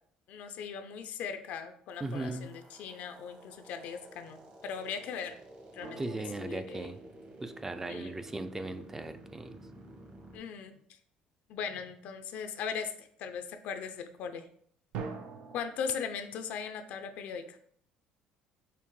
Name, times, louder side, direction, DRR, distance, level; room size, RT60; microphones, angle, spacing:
voice 1, 0.3-5.3 5.7-6.9 7.9-8.1 10.3-10.7 11.5-14.4 15.5-17.6, left 6 dB, 70° left, 8 dB, 0.4 m, -39 dB
sound 1, 1.9-10.4, right 1 dB, 45° right, 1.1 m, -52 dB
voice 2, 2.0-2.5 6.0-7.0 7.4-9.6, right 2 dB, 15° right, 9 dB, 0.3 m, -38 dB
sound 2, 5.8-7.9 14.9-15.6, right 5 dB, 70° right, 0.5 m, -44 dB
5.6 x 2.1 x 3.1 m, 0.64 s
cardioid pair, 105°, 3 cm